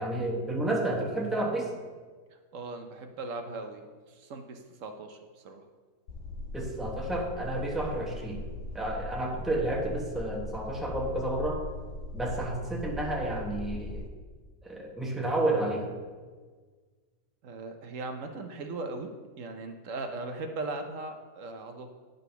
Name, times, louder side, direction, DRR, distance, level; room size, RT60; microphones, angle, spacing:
voice 1, 0.0-1.7 6.5-8.4 8.7-11.6 12.1-14.1 14.6-15.9, right 1 dB, ahead, -1 dB, 0.7 m, -31 dB
voice 2, 2.5-5.6 17.4-19.1 19.4-21.9, right 3 dB, 60° right, 5 dB, 0.9 m, -39 dB
sound 1, 6.1-14.1, left 1 dB, 60° left, 1.0 m, -40 dB
9.5 x 4.0 x 5.6 m, 1.5 s
omnidirectional pair, 1.7 m